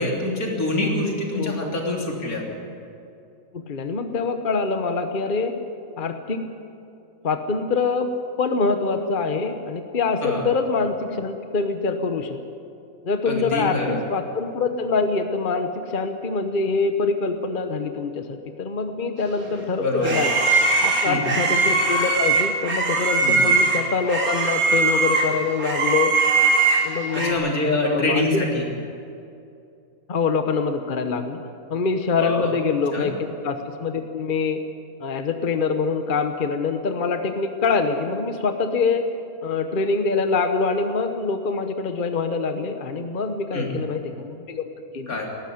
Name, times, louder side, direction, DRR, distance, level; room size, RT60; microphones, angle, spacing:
voice 1, 0.0-2.4 10.2-10.4 13.3-14.0 19.8-20.2 21.0-21.2 23.2-23.4 27.1-28.7 32.2-32.5 32.9-33.1 43.5-43.7 45.1-45.3, left 2 dB, 80° left, -1 dB, 3.8 m, -25 dB
voice 2, 1.3-1.7 3.5-5.6 6.0-6.5 7.2-8.1 8.4-12.4 13.0-20.4 20.8-26.1 26.8-27.5 27.8-28.4 30.1-31.4 31.7-33.1 33.4-34.6 35.0-39.0 39.4-45.2, left 4 dB, 40° left, 7 dB, 1.1 m, -25 dB
sound 1, 19.4-27.3, right 3 dB, 85° right, 3.0 m, -21 dB
19.0 x 14.5 x 9.5 m, 2.6 s
omnidirectional pair, 1.5 m